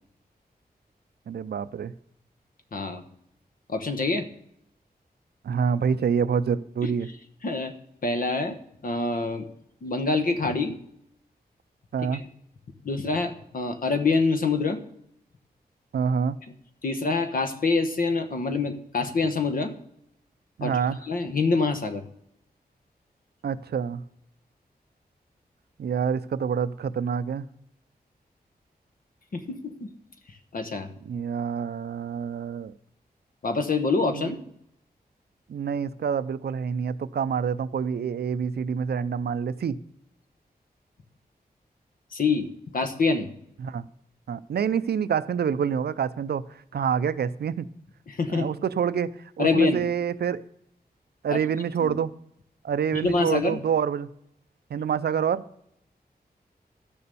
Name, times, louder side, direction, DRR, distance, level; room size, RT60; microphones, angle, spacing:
voice 1, 1.3-1.9 5.4-7.1 11.9-12.2 15.9-16.4 20.6-21.0 23.4-24.0 25.8-27.5 31.1-32.7 34.0-34.3 35.5-39.8 43.6-43.9 44.3-46.4 46.7-47.7 48.3-49.1 49.4-50.4 51.2-52.1 52.6-54.1 54.7-55.4, right 7 dB, 80° right, 15 dB, 0.5 m, -27 dB
voice 2, 2.7-3.0 3.7-4.3 6.8-6.9 7.4-7.7 8.0-8.6 8.8-9.5 9.8-10.7 12.1-12.2 12.8-14.8 16.8-19.7 20.6-22.0 29.3-29.9 30.5-30.9 33.4-34.4 42.1-42.5 42.7-43.3 48.1-48.5 49.4-49.8 51.3-51.4 51.8-51.9 52.9-53.6, left 3 dB, 60° left, 8 dB, 1.1 m, -25 dB
12.0 x 6.9 x 6.9 m, 0.75 s
wide cardioid pair, 130°, 16 cm